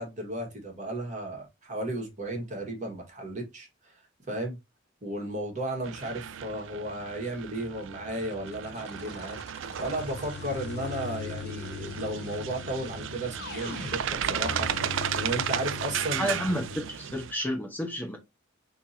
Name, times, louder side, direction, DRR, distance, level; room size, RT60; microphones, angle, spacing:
voice 1, 0.0-3.9 4.3-4.6 5.0-16.3, right 1 dB, 40° right, 1.7 m, -34 dB
sound 1, 5.8-17.3, right 9 dB, 65° right, 0.4 m, -35 dB
sound 2, 8.2-16.8, left 5 dB, 55° left, 0.5 m, -40 dB
voice 2, 16.2-18.2, equal, 10° left, 0.9 m, -30 dB
5.9 x 3.0 x 2.8 m
head